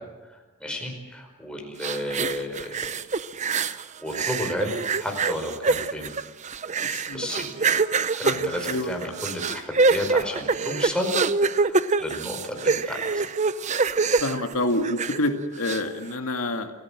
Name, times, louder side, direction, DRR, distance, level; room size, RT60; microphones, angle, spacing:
voice 1, 0.2-3.0 3.6-6.1 7.1-7.6 8.1-11.1 11.6-13.3, left 1 dB, 5° left, 1 dB, 4.9 m, -32 dB
sound 1, 1.8-3.8 4.1-15.3 15.6-15.8, right 4 dB, 35° right, 0.7 m, -25 dB
voice 2, 6.8-7.4 8.2-8.9 14.2-16.7, left 1 dB, 90° left, 5 dB, 2.1 m, -28 dB
29.0 x 16.0 x 7.6 m, 1.2 s
head